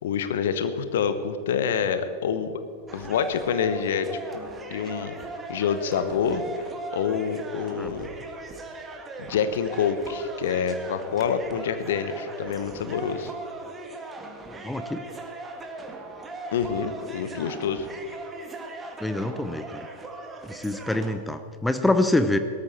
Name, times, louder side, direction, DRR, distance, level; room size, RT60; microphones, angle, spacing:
voice 1, 0.0-2.6 2.9-4.1 4.7-5.1 5.5-6.4 6.9-8.1 9.2-13.3 16.5-17.9, left 7 dB, 60° left, 11 dB, 1.0 m, -27 dB
sound 1, 2.9-21.1, right 2 dB, 15° right, 1.7 m, -39 dB
voice 2, 14.6-15.0 19.0-19.9 20.5-22.4, left 2 dB, 5° left, 10 dB, 0.7 m, -25 dB
18.5 x 13.5 x 4.3 m, 2.4 s
figure-of-eight pair, 90°, 0 cm